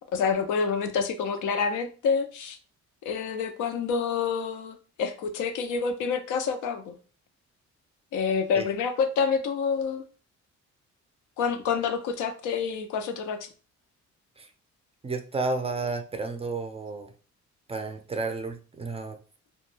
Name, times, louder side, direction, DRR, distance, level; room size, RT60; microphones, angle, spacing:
voice 1, 0.1-2.6 3.0-6.9 8.1-10.0 11.4-13.5, left 6 dB, 85° left, 8 dB, 0.5 m, -28 dB
voice 2, 15.0-17.1 17.7-19.2, right 3 dB, 20° right, 6 dB, 0.3 m, -32 dB
2.2 x 2.0 x 3.1 m, 0.36 s
cardioid pair, 90°, 30 cm